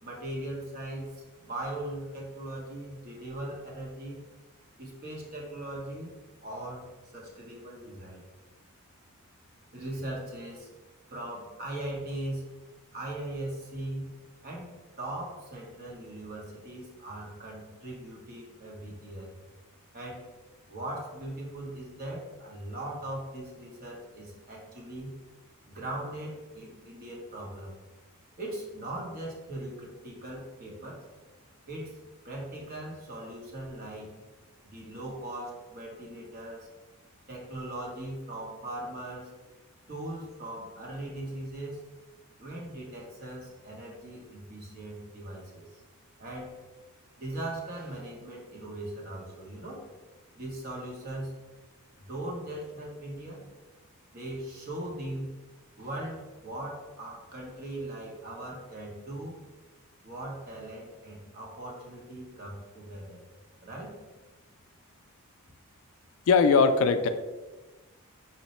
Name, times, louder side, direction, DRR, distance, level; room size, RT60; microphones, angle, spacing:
voice 1, 0.0-4.2 4.8-6.1 6.4-6.8 7.1-8.2 9.7-10.7 11.1-12.4 12.9-14.1 14.4-14.7 15.0-19.3 19.9-20.3 20.7-25.1 25.7-27.7 28.4-31.0 31.7-32.0 32.2-34.1 34.6-36.7 37.3-39.3 39.9-41.8 42.4-45.8 46.2-46.5 47.2-49.9 50.3-51.3 51.9-53.4 54.1-55.3 55.8-59.4 60.0-63.2 63.6-64.0, right 1 dB, 45° right, -2 dB, 0.9 m, -39 dB
voice 2, 66.3-67.1, left 5 dB, 70° left, 10 dB, 0.3 m, -20 dB
4.3 x 2.0 x 4.1 m, 1.2 s
head